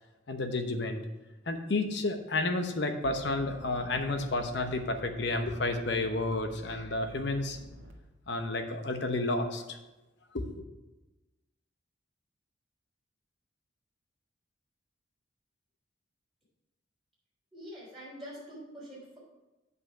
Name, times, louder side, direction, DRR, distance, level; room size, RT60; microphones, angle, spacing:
voice 1, 0.3-1.0 1.5-7.6 8.3-9.8 10.3-10.5, left 2 dB, 60° left, 6 dB, 0.9 m, -31 dB
sound 1, 3.0-7.9, equal, 85° right, 1.4 m, -50 dB
voice 2, 17.5-19.2, equal, ahead, -9 dB, 3.3 m, -45 dB
8.2 x 5.5 x 5.5 m, 1.1 s
head